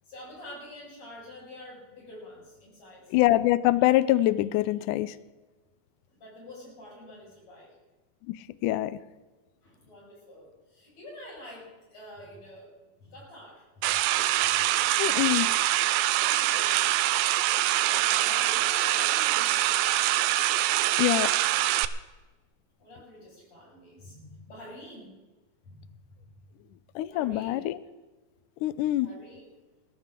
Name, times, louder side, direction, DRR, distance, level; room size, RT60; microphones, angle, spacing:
voice 1, 0.0-3.1 6.1-7.8 9.6-12.7 13.0-13.9 14.4-14.6 15.1-15.6 16.2-17.1 17.7-19.9 22.8-25.2 25.6-25.9 26.2-26.3 27.1-27.7 29.0-29.5, left 1 dB, 45° left, -3 dB, 7.1 m, -47 dB
voice 2, 3.1-5.1 8.3-8.4 8.6-9.0 15.0-15.5 21.0-21.3 27.0-27.8 28.6-29.1, left 16 dB, 90° left, 15 dB, 1.8 m, -24 dB
sound 1, 13.8-21.9, right 14 dB, 80° right, 2.1 m, -24 dB
20.5 x 14.0 x 3.7 m, 1.2 s
omnidirectional pair, 4.3 m